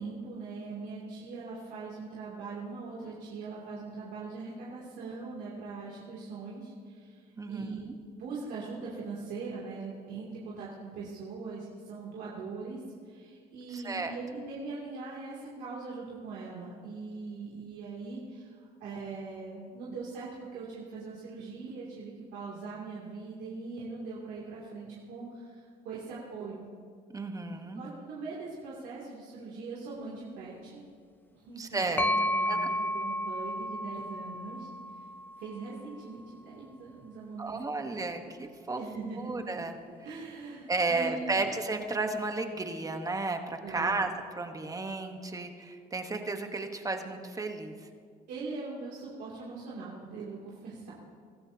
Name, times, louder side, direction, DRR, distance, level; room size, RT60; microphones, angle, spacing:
voice 1, 0.0-7.9 8.2-26.7 27.8-30.8 31.3-34.7 35.4-37.6 37.9-38.1 38.8-39.5 40.0-41.5 43.6-43.9 48.3-50.9, right 4 dB, 85° right, -6 dB, 2.7 m, -41 dB
voice 2, 7.4-7.8 13.7-14.1 27.1-27.8 31.6-32.1 32.5-32.7 37.4-38.8 39.2-39.8 40.7-44.1 44.4-47.7, right 3 dB, 20° right, 6 dB, 1.1 m, -33 dB
sound 1, 32.0-35.7, equal, 10° left, 0.6 m, -32 dB
23.5 x 13.0 x 2.8 m, 2.1 s
cardioid pair, 110°, 17 cm